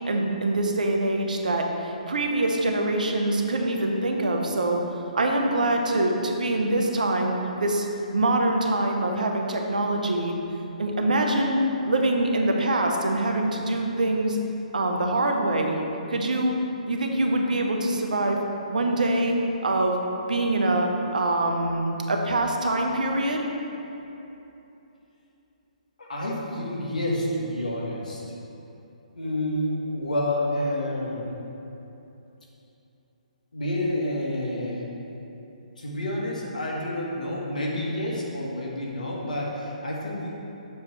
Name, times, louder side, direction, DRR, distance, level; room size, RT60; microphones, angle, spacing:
voice 1, 0.0-4.8 5.1-7.9 8.1-10.4 10.8-11.6 11.9-14.4 14.7-15.8 16.1-16.5 16.9-18.4 18.7-19.3 19.6-20.0 20.3-23.5, right 2 dB, 75° right, 2 dB, 0.9 m, -24 dB
voice 2, 26.0-28.2 29.1-31.3 33.5-34.9 35.8-40.3, left 1 dB, 80° left, -3 dB, 1.5 m, -29 dB
7.2 x 3.2 x 6.0 m, 2.9 s
hypercardioid pair, 140°, 4 cm